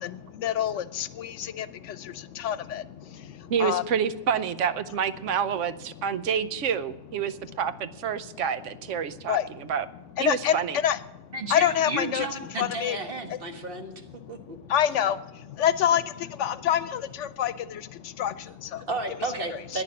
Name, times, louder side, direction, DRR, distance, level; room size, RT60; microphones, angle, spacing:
voice 1, 0.0-3.8 5.9-6.3 8.3-8.4 9.1-9.7 10.2-13.0 13.3-18.9 19.7-19.8, left 10 dB, 75° left, 14 dB, 1.0 m, -28 dB
voice 2, 3.5-9.9 10.2-10.8, right 7 dB, 85° right, 13 dB, 1.0 m, -28 dB
voice 3, 11.3-13.9 14.3-14.6 18.9-19.8, right 2 dB, 50° right, 4 dB, 1.6 m, -32 dB
10.5 x 10.0 x 8.5 m, 0.99 s
omnidirectional pair, 1.2 m